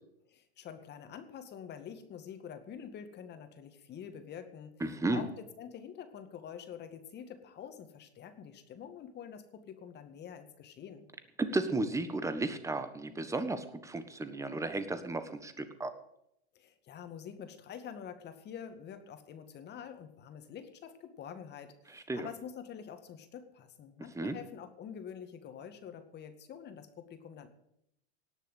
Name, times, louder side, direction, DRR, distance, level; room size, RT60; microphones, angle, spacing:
voice 1, 0.3-4.7 5.1-11.1 16.6-27.5, left 8 dB, 30° left, 8 dB, 2.0 m, -47 dB
voice 2, 4.8-5.2 11.4-15.9 22.1-22.3 24.1-24.4, right 2 dB, 10° right, 10 dB, 1.4 m, -34 dB
18.0 x 6.8 x 8.2 m, 0.78 s
hypercardioid pair, 115°, 33 cm